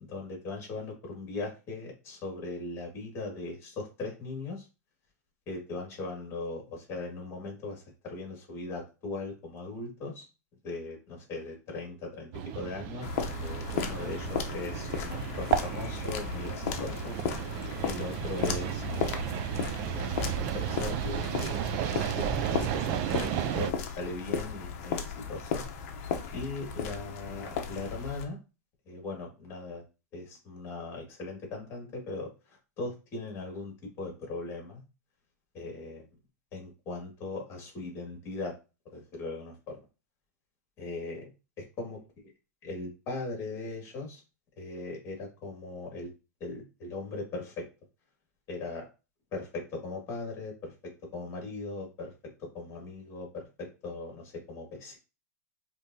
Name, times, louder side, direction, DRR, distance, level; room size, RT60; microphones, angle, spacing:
voice 1, 0.1-4.6 5.5-10.3 10.6-17.2 17.5-21.7 22.0-22.2 22.7-25.0 25.3-25.6 26.3-28.4 28.9-29.8 30.1-32.3 32.8-34.8 35.5-36.0 36.5-38.5 38.9-39.8 40.8-41.3 41.6-42.0 42.6-44.2 44.6-46.1 46.4-47.6 48.5-48.9 49.3-50.7 51.1-52.1 52.4-55.0, left 3 dB, 30° left, 0 dB, 2.0 m, -39 dB
sound 1, 12.3-23.7, right 10 dB, 40° right, 0.3 m, -33 dB
sound 2, 13.0-28.3, left 7 dB, 55° left, 0.8 m, -35 dB
5.2 x 2.7 x 2.7 m, 0.31 s
supercardioid pair, 145°, 9 cm